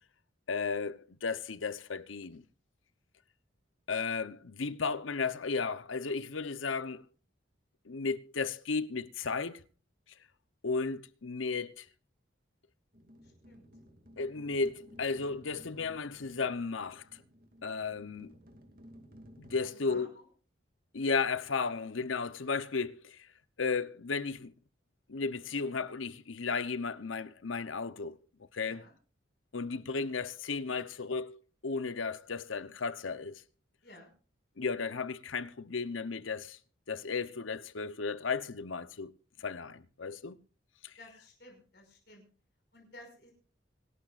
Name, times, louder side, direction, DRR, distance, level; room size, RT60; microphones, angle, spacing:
voice 1, 0.5-2.4 3.9-7.0 7.9-9.6 10.6-11.9 14.2-17.0 17.6-18.3 19.4-20.1 20.9-23.2 23.6-24.5 25.1-28.2 28.5-28.8 29.5-33.4 34.6-36.6 36.9-39.1 39.4-40.4 40.8-40.9, left 4 dB, 90° left, 0.9 m, -34 dB
sound 1, 12.9-19.6, equal, 45° right, 2.3 m, -56 dB
voice 2, 13.2-13.6 19.6-20.3 28.6-28.9 33.8-34.1 41.0-42.3 42.7-43.3, left 1 dB, 55° left, 5.7 m, -54 dB
26.0 x 12.0 x 2.5 m
head